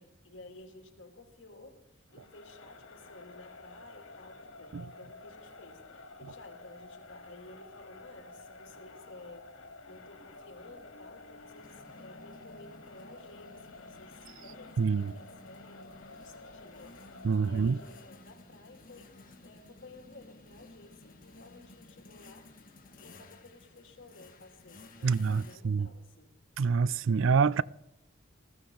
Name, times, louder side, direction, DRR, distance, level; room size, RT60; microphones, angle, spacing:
voice 1, 0.0-9.5 9.9-19.2 19.4-22.5 23.0-26.3, left 2 dB, 65° left, 2.9 m, -54 dB
Crowd, 2.1-18.3, left 3 dB, 85° left, 2.2 m, -51 dB
sound 1, 8.7-8.8 9.1-9.4 10.6-25.6, left 2 dB, 45° left, 2.1 m, -55 dB
voice 2, 14.8-15.1 17.2-17.8 25.0-25.9 26.6-27.6, right 5 dB, 70° right, 0.4 m, -26 dB
20.0 x 14.5 x 3.9 m
head